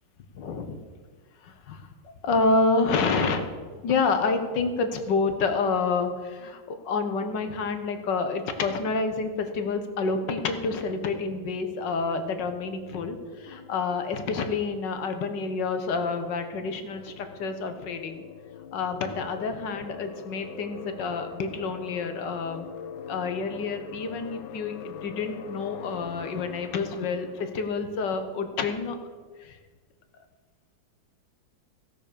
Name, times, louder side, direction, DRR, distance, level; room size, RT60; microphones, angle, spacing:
voice 1, 0.3-0.8 1.4-1.9 2.2-3.5 3.8-18.2 18.7-22.7 23.1-29.0 29.4-29.6, left 4 dB, 70° left, 7 dB, 1.7 m, -28 dB
sound 1, 11.1-27.6, left 8 dB, 90° left, 1.4 m, -44 dB
16.5 x 6.2 x 6.8 m, 1.5 s
omnidirectional pair, 2.1 m